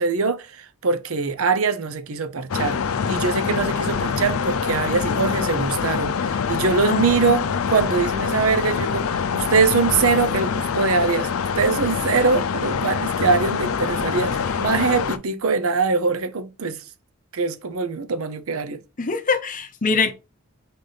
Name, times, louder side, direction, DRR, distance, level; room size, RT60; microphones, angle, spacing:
voice 1, 0.0-2.8 3.1-11.3 11.6-16.8 17.3-18.8, right 4 dB, 85° right, 0.6 m, -23 dB
sound 1, 2.5-15.2, left 6 dB, 80° left, 0.4 m, -25 dB
voice 2, 19.0-20.1, left 4 dB, 40° left, 0.6 m, -23 dB
4.1 x 3.3 x 3.9 m
head